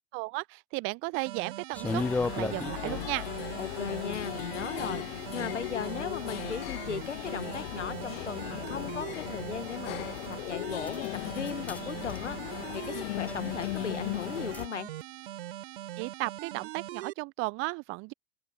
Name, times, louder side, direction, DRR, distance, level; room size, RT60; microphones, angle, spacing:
voice 1, 0.1-2.0 2.3-3.3 16.0-18.1, right 27 dB, 35° right, 0.7 m, -34 dB
sound 1, 1.1-17.1, right 14 dB, 65° right, 4.4 m, -42 dB
sound 2, 1.7-3.2 7.1-7.2 8.0-8.1 10.2-10.3 10.9-11.1 11.4-11.8 12.1-12.3 13.3-13.7 14.5-14.7, left 3 dB, 5° left, 0.3 m, -33 dB
sound 3, 1.8-14.7, left 18 dB, 60° left, 1.6 m, -37 dB
voice 2, 3.6-10.2 10.5-14.9, left 6 dB, 85° left, 1.5 m, -37 dB
open air
figure-of-eight pair, 90°, 35 cm